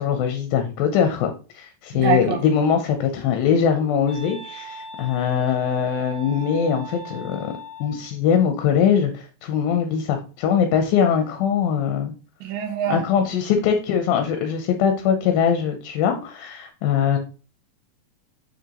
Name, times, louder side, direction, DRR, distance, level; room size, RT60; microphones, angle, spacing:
voice 1, 0.0-7.5 7.8-12.1 12.9-17.2, left 7 dB, 75° left, 6 dB, 2.4 m, -22 dB
voice 2, 1.9-2.4 12.4-13.0, right 8 dB, 70° right, 4 dB, 2.7 m, -24 dB
Wind instrument woodwind instrument, 2.8-8.1, right 1 dB, 45° left, 3.0 m, -40 dB
6.7 x 6.5 x 3.0 m, 0.35 s
omnidirectional pair, 4.5 m